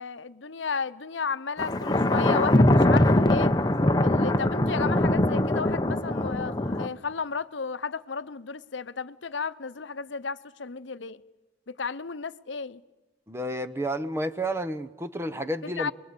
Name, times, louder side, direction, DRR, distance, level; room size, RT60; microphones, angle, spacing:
voice 1, 0.0-3.5 4.0-11.2 11.7-12.8 15.8-15.9, left 5 dB, 80° left, 0.8 m, -33 dB
Thunder, 1.6-6.9, left 1 dB, 20° left, 0.8 m, -22 dB
voice 2, 13.3-15.9, right 1 dB, 15° right, 0.9 m, -31 dB
27.0 x 22.0 x 8.5 m
head